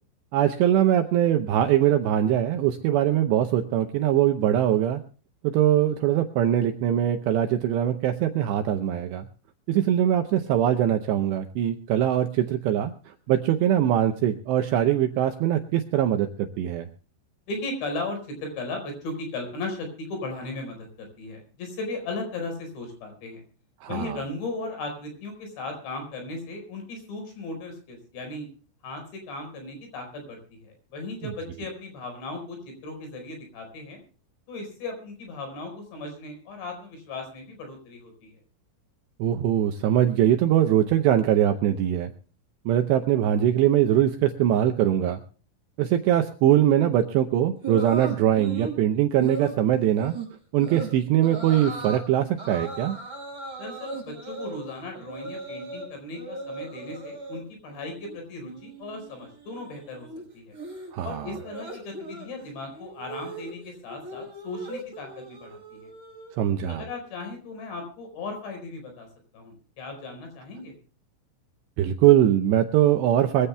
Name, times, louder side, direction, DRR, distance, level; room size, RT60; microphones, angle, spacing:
voice 1, 0.3-5.0 5.4-9.3 9.7-16.9 23.8-24.2 39.2-42.1 42.7-45.2 45.8-50.2 50.5-53.0 60.9-61.3 66.4-66.8 71.8-73.5, right 11 dB, 80° right, 6 dB, 2.6 m, -22 dB
voice 2, 17.5-23.4 23.9-28.5 28.8-34.0 34.5-38.4 53.6-60.1 60.3-60.5 61.0-65.9 66.7-69.1 69.3-70.7, left 2 dB, 60° left, 5 dB, 6.8 m, -36 dB
sound 1, 47.6-48.8 49.2-49.6 50.0-50.3 50.6-50.9 51.2-52.0 52.4-55.9 56.1-57.4 57.7-58.2 58.4-66.6, right 3 dB, 25° right, 6.3 m, -38 dB
23.5 x 15.5 x 2.2 m, 0.39 s
omnidirectional pair, 5.7 m